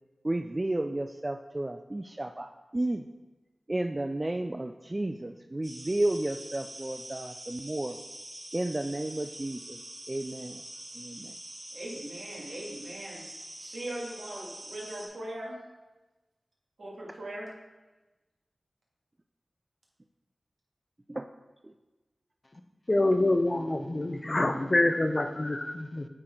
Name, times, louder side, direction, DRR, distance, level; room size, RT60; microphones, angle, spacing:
voice 1, 0.2-3.0 3.7-8.0 8.5-9.8 10.1-10.6 10.9-11.3 21.1-21.3 21.6-21.7, right 1 dB, 30° right, 7 dB, 0.3 m, -32 dB
sound 1, 5.6-15.1, right 1 dB, 55° right, 2.4 m, -45 dB
voice 2, 11.7-13.2 13.6-15.6 16.8-17.5, right 1 dB, 80° right, -4 dB, 2.1 m, -40 dB
voice 3, 22.9-26.1, left 2 dB, 35° left, 7 dB, 0.6 m, -26 dB
8.7 x 4.1 x 4.4 m, 1.1 s
wide cardioid pair, 55°, 0 cm